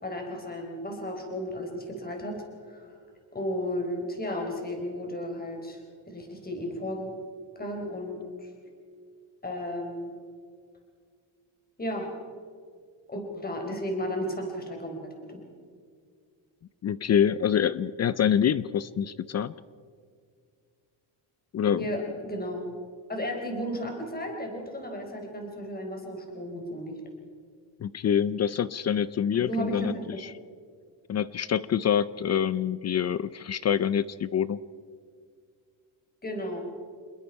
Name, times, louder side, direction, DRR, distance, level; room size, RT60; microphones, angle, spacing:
voice 1, 0.0-3.0 3.3-7.1 7.6-8.5 9.4-10.1 11.8-12.1 13.1-15.4 21.8-22.7 23.1-27.0 29.4-30.2 36.2-36.7, equal, 20° left, 2 dB, 4.2 m, -34 dB
voice 2, 16.8-19.5 21.5-21.8 27.8-29.9 31.1-34.6, left 8 dB, 35° left, 18 dB, 0.4 m, -26 dB
27.5 x 21.0 x 4.7 m, 2.1 s
cardioid pair, 125°, 48 cm